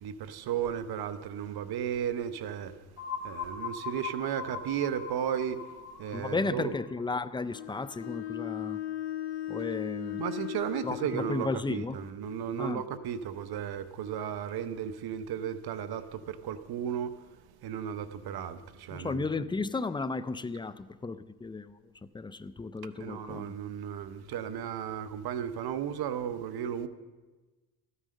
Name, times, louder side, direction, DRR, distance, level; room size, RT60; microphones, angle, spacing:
voice 1, 0.0-2.8 3.2-5.7 6.0-6.7 10.2-19.2 23.0-26.9, right 9 dB, 70° right, 0.9 m, -34 dB
sound 1, 3.0-8.6, left 6 dB, 40° left, 2.3 m, -41 dB
voice 2, 6.1-8.8 9.5-10.2 10.8-12.0 12.6-12.8 18.9-21.8 22.1-23.5, left 3 dB, 10° left, 0.4 m, -34 dB
Bowed string instrument, 7.5-11.4, left 13 dB, 80° left, 1.2 m, -37 dB
13.5 x 9.8 x 6.5 m
cardioid pair, 90°, 39 cm